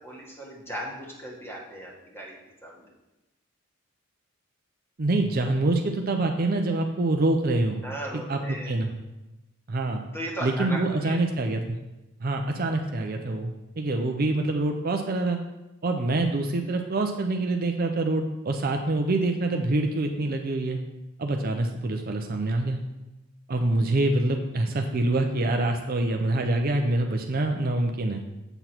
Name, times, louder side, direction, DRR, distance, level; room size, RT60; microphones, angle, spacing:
voice 1, 0.0-2.9 7.8-8.7 10.1-11.2, right 1 dB, 10° left, -2 dB, 1.5 m, -37 dB
voice 2, 5.0-7.8 8.3-8.4 8.7-8.9 9.7-10.0 10.4-11.8 12.2-13.5 13.8-15.4 15.8-20.8 21.2-22.8 23.5-28.2, right 2 dB, 45° right, 4 dB, 0.6 m, -25 dB
8.0 x 6.0 x 4.4 m, 1.0 s
head